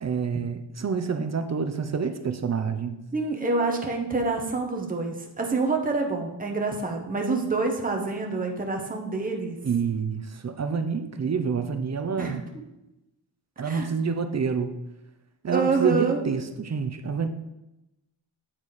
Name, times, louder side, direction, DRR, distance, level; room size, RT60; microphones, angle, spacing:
voice 1, 0.0-3.0 9.6-12.4 13.6-14.7 15.4-17.3, right 5 dB, 35° right, 9 dB, 0.6 m, -28 dB
voice 2, 3.1-9.6 12.2-12.3 13.6-13.9 15.5-16.2, right 3 dB, 20° right, 2 dB, 1.0 m, -27 dB
8.9 x 4.1 x 4.8 m, 0.93 s
wide cardioid pair, 130°, 44 cm